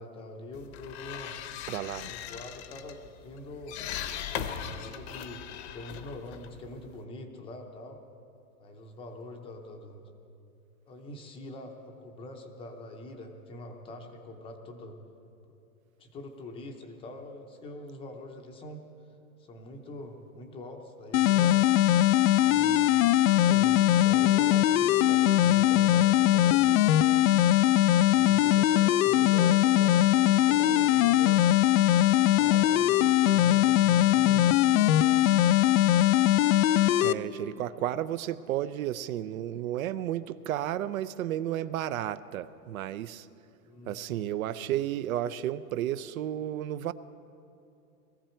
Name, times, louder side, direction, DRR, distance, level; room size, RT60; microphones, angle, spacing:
voice 1, 0.0-1.3 2.0-3.8 4.3-8.0 8.6-10.1 10.8-15.0 16.0-18.8 19.4-21.7 22.4-23.0 23.3-27.3 28.0-31.4 32.2-35.1 43.6-44.3, left 1 dB, 10° left, 4 dB, 0.6 m, -44 dB
sound 1, 0.5-7.0, left 9 dB, 45° left, 0.9 m, -39 dB
voice 2, 1.7-2.1 37.0-43.3 43.9-46.9, right 12 dB, 65° right, 15 dB, 0.6 m, -32 dB
sound 2, 21.1-37.1, left 13 dB, 65° left, 0.5 m, -21 dB
20.5 x 14.5 x 4.4 m, 2.7 s
supercardioid pair, 155°, 44 cm